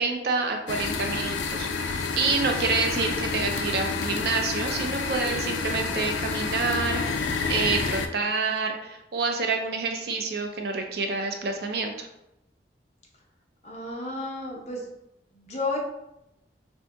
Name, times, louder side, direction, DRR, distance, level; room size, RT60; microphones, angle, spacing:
voice 1, 0.0-1.7 2.2-7.2 7.5-12.1, right 4 dB, 60° right, 4 dB, 0.4 m, -28 dB
sound 1, 0.7-8.1, left 4 dB, 90° left, 0.3 m, -29 dB
voice 2, 13.6-14.8 15.3-15.8, left 2 dB, 40° left, -2 dB, 0.7 m, -32 dB
2.7 x 2.6 x 3.4 m, 0.87 s
head